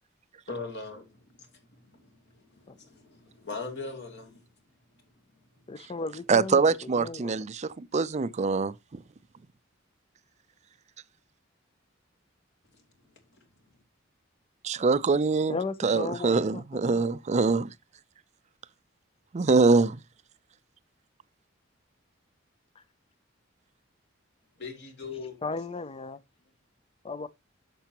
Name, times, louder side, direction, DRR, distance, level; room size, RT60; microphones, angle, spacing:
voice 1, 0.5-1.3 1.9-4.4 24.6-25.4, left 3 dB, 60° left, 2.7 m, -40 dB
voice 2, 5.7-7.4 15.5-17.1 22.8-22.9 25.4-26.2 27.0-27.3, left 3 dB, 30° left, 0.5 m, -36 dB
voice 3, 6.3-9.0 14.6-15.5 15.8-17.7 19.3-20.0, right 4 dB, 35° right, 0.5 m, -24 dB
10.5 x 6.8 x 2.9 m
head